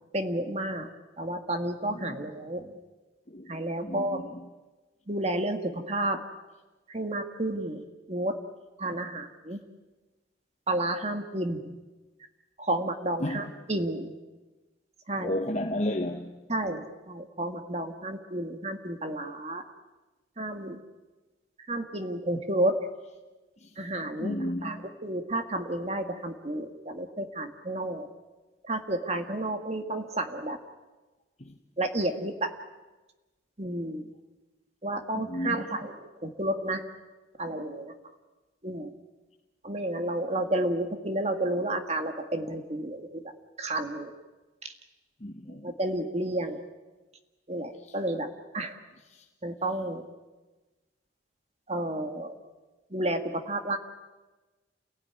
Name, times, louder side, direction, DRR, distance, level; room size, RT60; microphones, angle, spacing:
voice 1, 0.1-0.9 1.2-2.7 3.5-4.2 5.1-6.2 6.9-8.4 8.8-9.6 10.7-11.7 12.6-14.1 15.1-15.3 16.5-19.6 20.4-20.8 21.7-22.9 23.8-24.3 24.6-24.8 25.0-28.1 28.7-30.6 31.8-32.5 33.6-34.1 34.8-35.9 36.2-36.8 37.4-37.9 38.6-38.9 39.6-43.2 43.6-44.1 45.6-46.6 47.5-48.3 48.5-48.8 49.4-50.0 51.7-52.3 52.9-53.8, right 1 dB, 35° right, 1.8 m, -31 dB
voice 2, 1.9-2.3 3.3-3.5 3.8-4.5 8.9-9.1 13.2-13.5 15.2-16.4 23.6-23.7 24.2-24.9 31.4-31.5 35.1-35.8 45.2-45.7 47.8-48.0 49.1-49.3, left 1 dB, 35° left, 1.1 m, -33 dB
29.0 x 17.5 x 9.8 m
head